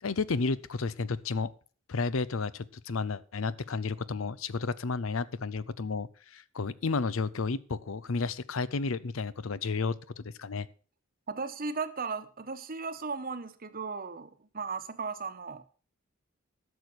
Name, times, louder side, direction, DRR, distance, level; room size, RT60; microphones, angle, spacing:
voice 1, 0.0-1.5 1.9-10.7, left 4 dB, 75° left, 18 dB, 0.6 m, -32 dB
voice 2, 11.3-15.6, right 4 dB, 45° right, 11 dB, 1.1 m, -36 dB
12.5 x 6.8 x 6.1 m, 0.40 s
head